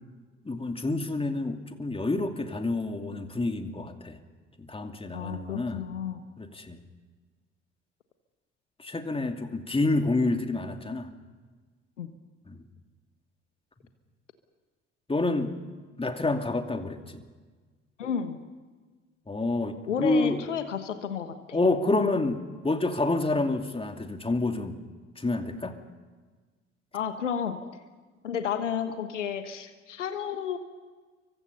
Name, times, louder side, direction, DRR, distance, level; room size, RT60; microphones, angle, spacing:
voice 1, 0.4-4.2 4.6-5.8 6.4-6.8 8.8-11.1 12.5-12.6 15.1-15.5 16.0-17.2 19.3-20.4 21.5-24.8 25.2-25.7, left 2 dB, 15° left, 6 dB, 2.6 m, -28 dB
voice 2, 5.1-6.2 12.0-12.1 18.0-18.4 19.9-21.6 26.9-27.6 28.2-30.6, left 7 dB, 80° left, 10 dB, 1.3 m, -32 dB
29.5 x 24.5 x 5.5 m, 1.4 s
figure-of-eight pair, 55°, 36 cm